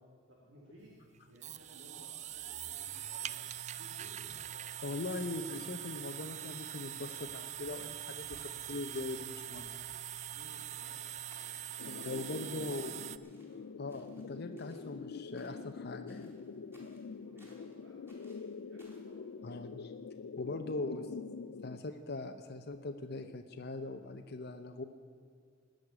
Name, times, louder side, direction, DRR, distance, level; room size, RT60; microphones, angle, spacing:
voice 1, 0.3-1.0 1.3-4.6 10.3-13.1 13.4-13.6 16.6-18.2 18.5-19.2 20.7-20.9 21.4-21.6, right 1 dB, 70° right, -5 dB, 3.3 m, -60 dB
sound 1, 0.8-13.2, right 11 dB, 35° right, 0.4 m, -43 dB
sound 2, 2.9-4.1 4.4-4.8 5.1-5.4 5.7-6.1 6.4-6.7 7.0-7.3 7.7-8.8 9.1-9.5 9.8-10.1 10.5-10.9 11.3-12.3 12.7-13.6 13.9-14.9 15.3-15.8 16.1-17.7 18.1-19.1, right 1 dB, 15° right, 4.1 m, -65 dB
voice 2, 4.8-9.8 11.9-13.0 13.8-16.4 19.4-19.9 20.4-21.0 21.6-24.8, left 2 dB, 55° left, 5 dB, 0.8 m, -41 dB
sound 3, 11.8-21.8, left 5 dB, 75° left, 0.4 m, -45 dB
19.0 x 6.6 x 9.9 m, 2.3 s
head